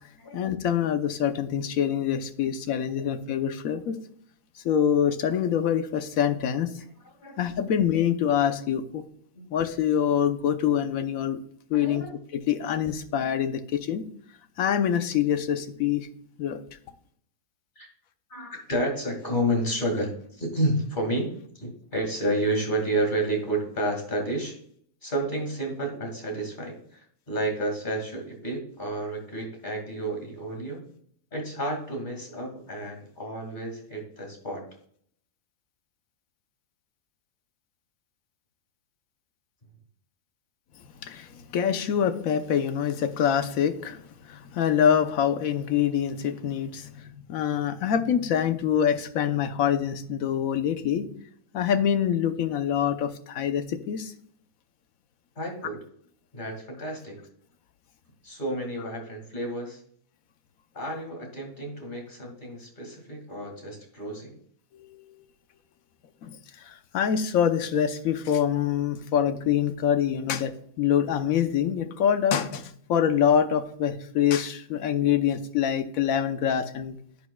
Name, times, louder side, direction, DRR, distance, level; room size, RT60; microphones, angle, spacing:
voice 1, 0.3-4.0 4.6-6.7 7.4-9.0 9.5-11.4 11.7-12.0 12.5-14.0 14.6-16.1 16.4-16.6 41.0-51.1 51.5-54.1 64.7-65.0 66.2-77.0, left 9 dB, 70° left, 9 dB, 1.1 m, -25 dB
voice 2, 11.7-12.1 17.8-17.9 18.3-21.3 21.5-24.6 25.0-30.8 31.3-34.6 55.4-55.8 56.3-57.2 58.2-59.8 60.7-64.4, right 1 dB, 30° left, 1 dB, 2.3 m, -30 dB
10.5 x 7.2 x 2.3 m, 0.63 s
omnidirectional pair, 1.6 m